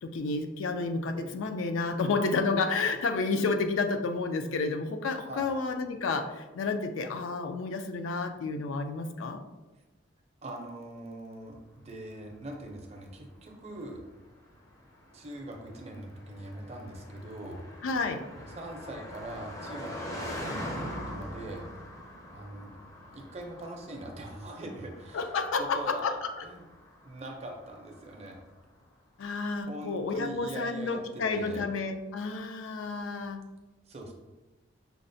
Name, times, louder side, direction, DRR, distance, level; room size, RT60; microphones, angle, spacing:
voice 1, 0.0-9.4 17.8-18.2 25.1-26.3 29.2-33.4, left 4 dB, 90° left, 6 dB, 0.4 m, -30 dB
voice 2, 10.4-14.0 15.1-17.7 18.3-21.7 22.3-22.8 23.1-26.7 27.0-28.4 29.7-31.6 33.9-34.1, right 1 dB, 35° right, 1 dB, 0.5 m, -42 dB
Car passing by, 12.2-28.6, equal, 15° left, 0.4 m, -44 dB
5.7 x 2.0 x 2.6 m, 1.1 s
head